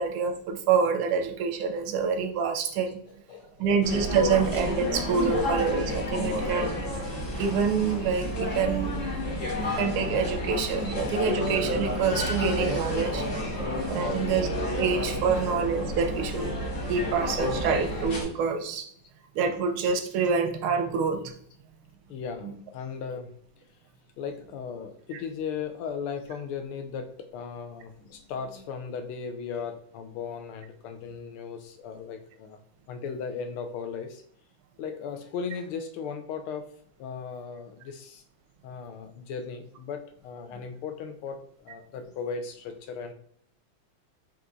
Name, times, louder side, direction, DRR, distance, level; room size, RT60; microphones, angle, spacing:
voice 1, 0.0-3.2 3.6-6.8 7.4-8.9 9.6-13.2 13.9-14.5 14.8-16.5 16.9-18.8 19.3-21.3 22.4-22.5 25.1-25.2 40.5-40.6, right 6 dB, 85° right, 6 dB, 1.5 m, -27 dB
voice 2, 3.1-3.8 5.2-5.3 10.4-10.5 14.0-14.2 15.3-15.4 19.5-19.6 22.1-23.3 23.6-23.7 24.2-32.6 32.9-34.2 34.8-36.7 37.0-38.2 38.6-43.1, left 6 dB, 90° left, 7 dB, 1.6 m, -37 dB
sound 1, 3.8-18.2, left 1 dB, 45° left, 1.3 m, -30 dB
5.8 x 3.1 x 2.6 m, 0.63 s
omnidirectional pair, 2.3 m